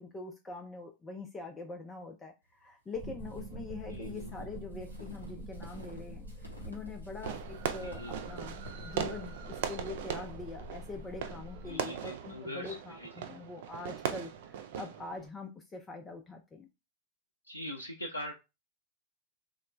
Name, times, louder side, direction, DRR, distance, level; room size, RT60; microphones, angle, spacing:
voice 1, 0.0-8.6 8.8-16.7, left 3 dB, 15° left, 4 dB, 0.4 m, -44 dB
sound 1, 3.0-11.8, equal, 25° right, 0.9 m, -46 dB
sound 2, 3.2-11.1, right 1 dB, 85° right, 0.7 m, -54 dB
voice 2, 3.9-4.3 7.8-8.3 11.7-13.1 17.5-18.3, equal, 80° left, 3 dB, 0.4 m, -42 dB
Fireworks, 7.2-15.3, right 8 dB, 55° right, 0.3 m, -39 dB
3.1 x 2.0 x 3.1 m, 0.25 s
figure-of-eight pair, 90°, 0 cm